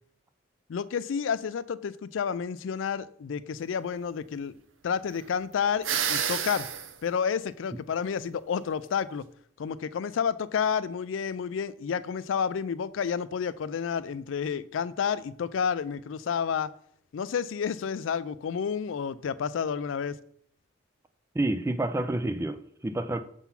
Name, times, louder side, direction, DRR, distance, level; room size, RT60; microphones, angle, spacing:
voice 1, 0.7-4.6 4.8-6.7 7.0-9.2 9.6-16.7 17.1-20.2, left 7 dB, 75° left, 0.4 m, -30 dB
sound 1, 5.8-6.9, right 8 dB, 80° right, 0.7 m, -29 dB
voice 2, 21.3-23.2, right 1 dB, 15° right, 0.3 m, -29 dB
7.1 x 3.8 x 5.7 m
head